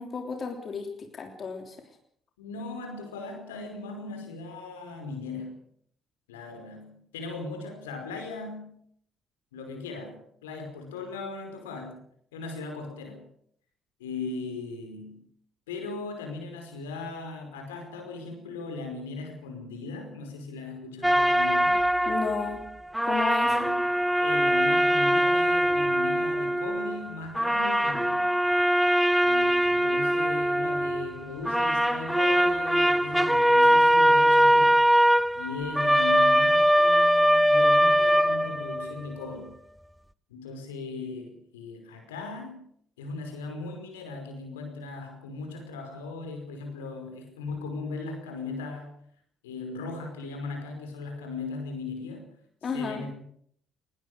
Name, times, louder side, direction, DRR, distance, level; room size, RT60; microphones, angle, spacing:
voice 1, 0.0-1.8 22.1-22.7 23.0-23.6 52.6-53.0, left 5 dB, 45° left, 4 dB, 3.3 m, -33 dB
voice 2, 2.4-5.6 6.3-8.7 9.5-12.0 12.3-13.3 14.0-15.2 15.7-21.8 23.4-23.7 24.2-28.4 29.2-34.8 35.3-39.5 40.3-42.6 43.0-48.9 49.4-52.3 52.7-53.1, left 3 dB, 80° left, 4 dB, 5.1 m, -38 dB
sound 1, 21.0-22.7 22.9-27.1 27.3-31.2 31.4-39.0, equal, 5° right, 1.1 m, -22 dB
21.0 x 20.5 x 6.4 m, 0.64 s
figure-of-eight pair, 45°, 0 cm